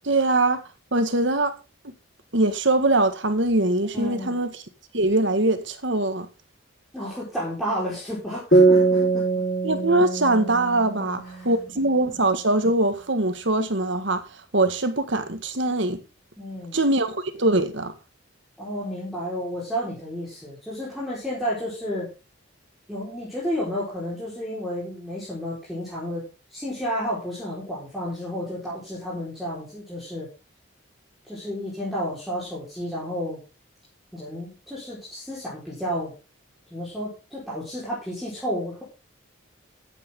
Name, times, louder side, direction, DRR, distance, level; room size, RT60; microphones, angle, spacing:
voice 1, 0.0-0.6 0.9-1.5 1.8-1.9 2.3-4.6 4.9-6.3 9.6-16.0 16.7-17.9, right 2 dB, 60° right, 1.7 m, -22 dB
voice 2, 3.9-4.3 6.9-9.2 11.3-11.5 16.4-16.8 18.6-22.1 22.9-30.3 31.2-33.4 34.1-36.1 36.7-38.8, equal, ahead, 4.4 m, -31 dB
sound 1, 8.5-12.0, right 3 dB, 45° left, 4.5 m, -22 dB
14.0 x 8.9 x 3.7 m
head